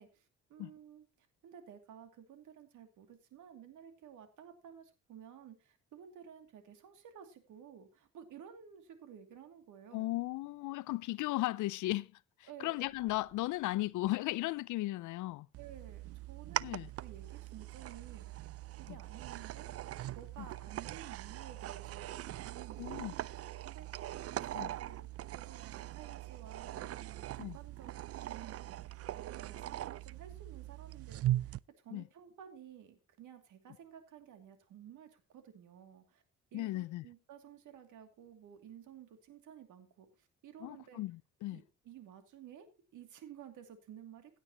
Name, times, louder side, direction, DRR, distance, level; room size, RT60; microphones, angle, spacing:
voice 1, 0.0-10.1 12.5-12.7 15.6-16.7 17.0-18.3 18.8-19.7 20.1-24.1 24.4-25.0 25.3-28.6 29.2-36.2 36.5-41.0 41.5-42.7 42.9-44.4, right 9 dB, 80° right, 2.6 m, -54 dB
voice 2, 9.9-12.2 12.6-15.5 16.6-16.9 22.8-23.1 24.5-24.7 27.4-27.6 31.9-32.0 36.5-37.1 40.6-41.6, left 18 dB, 80° left, 0.5 m, -36 dB
sound 1, 12.7-14.3, right 1 dB, 10° right, 3.3 m, -68 dB
sound 2, 15.5-31.6, right 14 dB, 55° right, 0.5 m, -41 dB
16.5 x 8.9 x 2.9 m
cardioid pair, 90°, 30 cm